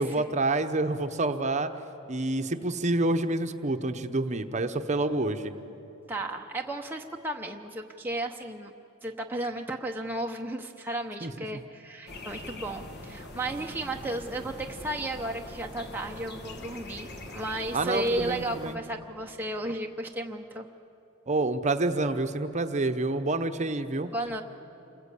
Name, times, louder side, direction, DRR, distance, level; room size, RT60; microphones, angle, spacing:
voice 1, 0.0-1.7 2.1-5.6 11.2-11.6 17.7-18.8 21.3-24.1, right 2 dB, 35° right, 8 dB, 0.9 m, -28 dB
voice 2, 6.1-8.7 9.0-20.7 24.1-24.4, right 1 dB, 10° right, 1 dB, 0.8 m, -34 dB
sound 1, 12.1-18.8, left 1 dB, 50° left, 1.8 m, -43 dB
28.5 x 21.0 x 8.3 m, 3.0 s
head